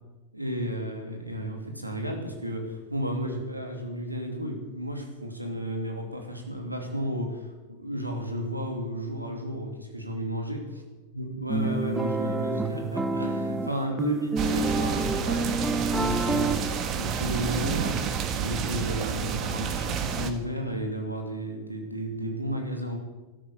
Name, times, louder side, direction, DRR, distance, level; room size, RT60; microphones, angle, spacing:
voice 1, 0.3-7.5 7.8-10.7 11.1-16.6 17.0-18.0 18.4-23.0, equal, 85° right, 3 dB, 2.7 m, -33 dB
sound 1, 11.5-16.6, right 3 dB, 10° right, 0.8 m, -28 dB
sound 2, 14.4-20.3, right 7 dB, 35° right, 1.5 m, -29 dB
13.0 x 12.5 x 7.0 m, 1.2 s
figure-of-eight pair, 90°, 0 cm